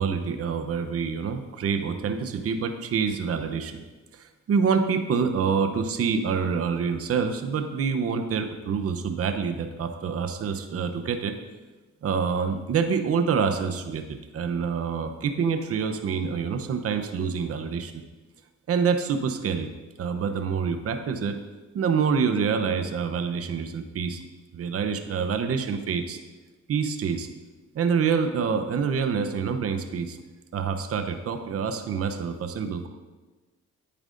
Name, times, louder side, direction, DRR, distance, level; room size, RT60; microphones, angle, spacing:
voice 1, 0.0-3.8 4.1-11.3 12.0-18.0 18.7-19.7 20.0-21.4 21.7-24.2 24.5-26.2 26.7-27.3 27.7-30.2 30.5-32.9, right 6 dB, 50° right, 7 dB, 0.8 m, -26 dB
10.0 x 8.8 x 2.6 m, 1.2 s
cardioid pair, 90°, 30 cm